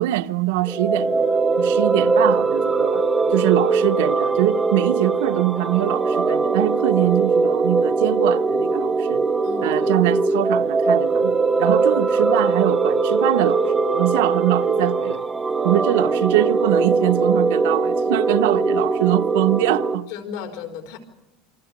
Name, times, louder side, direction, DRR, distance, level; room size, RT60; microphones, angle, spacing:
voice 1, 0.0-3.0 3.3-9.2 9.6-15.2 15.6-20.1, right 16 dB, 80° right, 0.8 m, -23 dB
sound 1, 0.6-20.0, right 4 dB, 10° right, 0.8 m, -21 dB
voice 2, 9.4-10.0 20.1-21.0, left 7 dB, 70° left, 4.5 m, -34 dB
28.0 x 25.0 x 5.2 m
cardioid pair, 175°, 0 cm